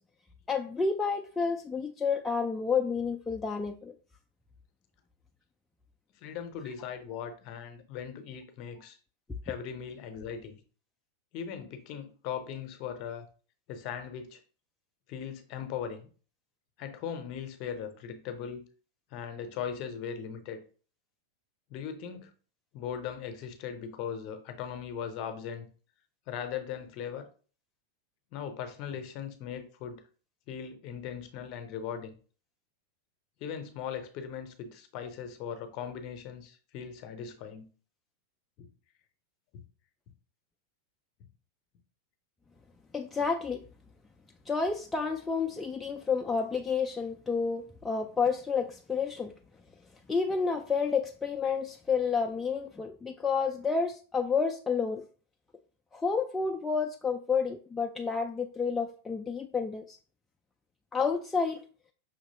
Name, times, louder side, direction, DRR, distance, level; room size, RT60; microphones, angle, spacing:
voice 1, 0.5-3.9 42.9-43.6 44.5-49.3 50.1-55.0 55.9-60.0 60.9-61.6, left 5 dB, 10° left, 0.4 m, -30 dB
voice 2, 6.2-9.0 9.4-10.6 11.3-13.2 13.7-14.4 15.1-16.1 16.8-18.7 19.1-20.6 21.7-22.3 22.7-25.7 26.3-27.3 28.3-30.0 30.5-32.1 33.4-37.7 38.6-38.7, left 8 dB, 40° left, 0.7 m, -39 dB
5.7 x 2.9 x 2.8 m
figure-of-eight pair, 90°, 0 cm